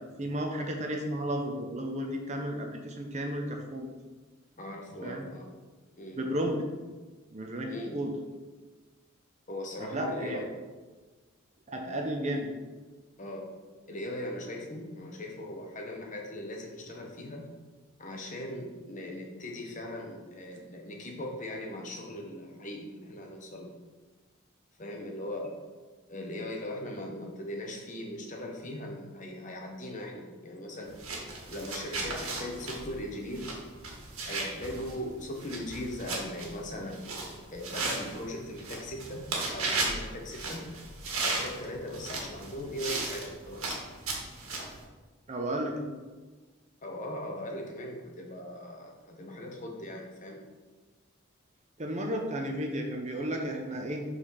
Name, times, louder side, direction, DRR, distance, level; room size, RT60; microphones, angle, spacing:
voice 1, 0.2-3.9 5.0-5.3 6.1-6.6 7.3-8.1 9.8-10.4 11.7-12.5 45.3-45.9 51.8-54.0, right 1 dB, 35° right, 2 dB, 0.8 m, -33 dB
voice 2, 4.6-5.5 6.0-6.2 7.7-8.0 9.5-10.5 11.7-12.1 13.2-17.5 18.0-23.8 24.8-25.6 26.1-30.9 31.5-33.6 34.3-37.0 37.5-40.7 41.2-43.8 46.8-50.4, left 1 dB, 35° left, 1 dB, 1.1 m, -39 dB
sound 1, 30.9-44.8, right 3 dB, 85° right, 1.6 m, -36 dB
5.8 x 4.2 x 5.6 m, 1.3 s
head